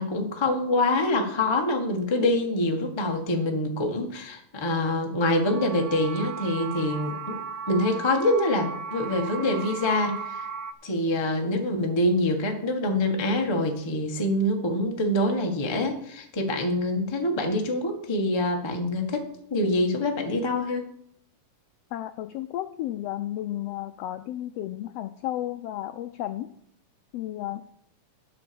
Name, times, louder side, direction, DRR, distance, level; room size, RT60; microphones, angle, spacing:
voice 1, 0.0-7.4 7.7-10.5 10.8-20.9, left 1 dB, 35° left, 3 dB, 0.4 m, -25 dB
sound 1, 5.4-10.7, right 5 dB, 75° right, 1.9 m, -36 dB
voice 2, 21.9-26.5 27.1-27.6, left 13 dB, 85° left, 10 dB, 1.4 m, -33 dB
11.5 x 6.0 x 6.9 m, 0.71 s
omnidirectional pair, 3.4 m